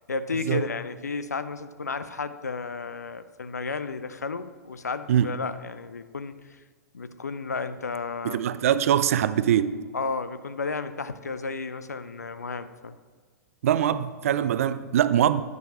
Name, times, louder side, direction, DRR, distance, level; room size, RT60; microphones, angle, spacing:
voice 1, 0.1-6.3 6.9-8.5 9.9-13.0, left 4 dB, 80° left, 0.5 m, -33 dB
voice 2, 8.2-9.8 13.6-15.4, right 10 dB, 55° right, 0.4 m, -23 dB
10.0 x 9.5 x 3.0 m
figure-of-eight pair, 105°, 9 cm